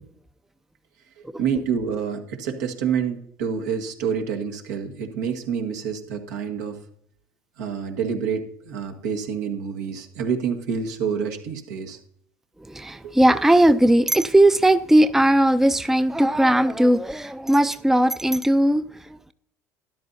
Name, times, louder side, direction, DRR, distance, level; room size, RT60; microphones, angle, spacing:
voice 1, 1.4-6.8 7.6-12.0 13.0-13.1, right 7 dB, 80° right, 1.6 m, -27 dB
voice 2, 12.6-19.3, right 1 dB, 5° right, 0.5 m, -18 dB
13.0 x 11.0 x 2.7 m
hypercardioid pair, 70°, 9 cm